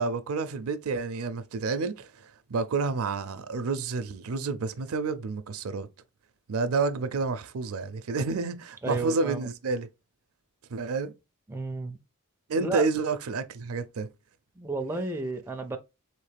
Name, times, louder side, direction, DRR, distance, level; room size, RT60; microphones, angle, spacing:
voice 1, 0.0-2.1 2.5-5.9 6.5-9.9 10.7-11.1 12.5-14.1, right 4 dB, 70° right, 0.5 m, -29 dB
voice 2, 8.8-9.5 11.5-12.0 12.6-12.8 14.6-15.8, right 3 dB, 10° right, 0.4 m, -32 dB
4.3 x 3.2 x 3.3 m
head